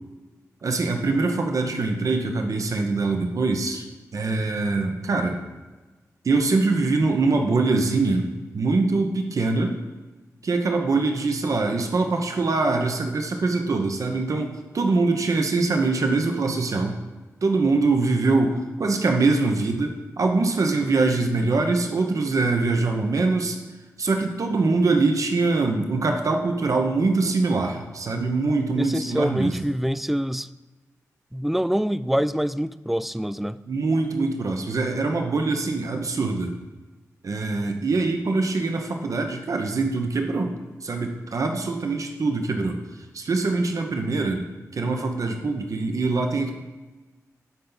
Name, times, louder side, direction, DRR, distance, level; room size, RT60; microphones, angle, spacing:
voice 1, 0.6-3.8 4.1-5.4 6.2-8.3 8.5-9.8 10.4-17.0 17.4-23.6 24.0-29.6 33.7-36.5 37.2-40.6 40.8-42.8 43.1-44.4 44.7-46.5, right 3 dB, 65° right, 4 dB, 1.0 m, -23 dB
voice 2, 28.8-30.5 31.3-33.6, equal, 5° right, 15 dB, 0.3 m, -25 dB
12.0 x 4.4 x 4.0 m, 1.2 s
cardioid pair, 55°, 6 cm